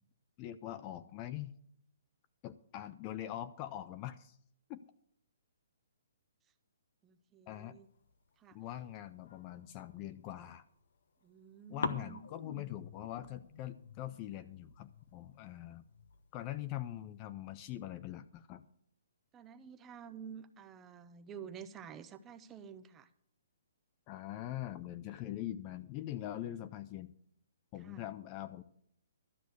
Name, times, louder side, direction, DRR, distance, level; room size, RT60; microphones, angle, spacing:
voice 1, 0.4-1.5 2.4-4.4 4.7-4.8 7.5-7.8 8.5-10.6 11.7-15.8 16.3-18.6 24.1-27.1 27.7-28.6, left 13 dB, 25° left, 13 dB, 0.4 m, -43 dB
voice 2, 7.0-7.9 8.4-8.6 11.2-12.2 19.3-23.1 27.8-28.1, right 7 dB, 15° right, 11 dB, 0.6 m, -50 dB
sound 1, 7.8-10.0 10.6-11.5 11.8-17.3, left 4 dB, 65° left, 1.0 m, -46 dB
12.5 x 6.3 x 8.1 m, 0.68 s
hypercardioid pair, 165°, 0 cm